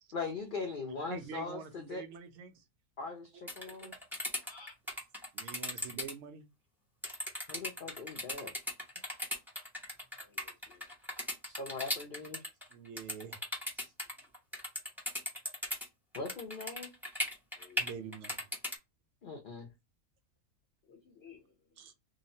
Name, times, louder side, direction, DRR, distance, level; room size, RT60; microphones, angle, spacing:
voice 1, 0.1-2.0 3.0-3.9 7.5-8.5 11.5-12.4 13.8-13.9 16.1-16.9 19.2-19.7, left 4 dB, 75° left, 0.4 m, -40 dB
voice 2, 0.9-2.6 3.3-3.9 5.3-6.5 12.7-13.4 17.8-18.5 21.8-21.9, right 6 dB, 60° right, 0.8 m, -46 dB
sound 1, 3.5-6.1 7.0-15.9 16.1-18.8, left 1 dB, ahead, 0.4 m, -37 dB
voice 3, 4.4-4.7 10.2-10.9 17.6-17.9 20.8-21.5, left 5 dB, 50° left, 0.9 m, -56 dB
3.0 x 2.0 x 2.6 m
omnidirectional pair, 1.5 m